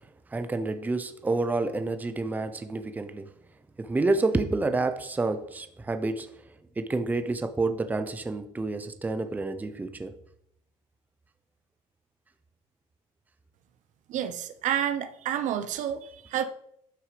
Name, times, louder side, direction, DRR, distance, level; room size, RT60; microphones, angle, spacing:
voice 1, 0.3-3.3 3.8-6.3 6.8-10.1, right 3 dB, 10° right, 0.7 m, -29 dB
voice 2, 14.1-16.4, right 10 dB, 65° right, 0.9 m, -29 dB
11.5 x 6.3 x 5.1 m
cardioid pair, 155°, 14 cm